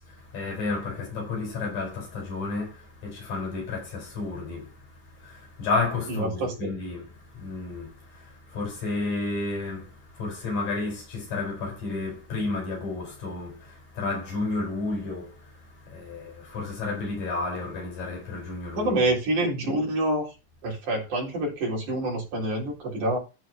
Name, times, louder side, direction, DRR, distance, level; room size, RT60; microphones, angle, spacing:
voice 1, 0.3-4.7 5.2-7.1 7.4-7.9 8.5-9.9 10.2-13.6 14.0-15.3 15.9-19.1, left 3 dB, 65° left, 5.9 m, -31 dB
voice 2, 6.1-6.7 18.8-20.3 20.6-23.2, right 1 dB, 70° right, 5.3 m, -27 dB
14.0 x 4.8 x 4.5 m
omnidirectional pair, 3.7 m